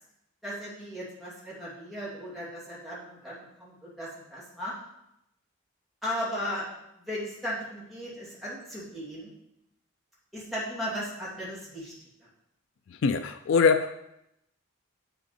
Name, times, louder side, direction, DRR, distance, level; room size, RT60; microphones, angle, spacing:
voice 1, 0.4-4.7 6.0-6.6 7.0-9.3 10.3-11.9, equal, ahead, -9 dB, 2.7 m, -36 dB
voice 2, 12.9-14.0, left 5 dB, 65° left, 9 dB, 0.3 m, -23 dB
8.0 x 5.3 x 4.3 m, 0.83 s
head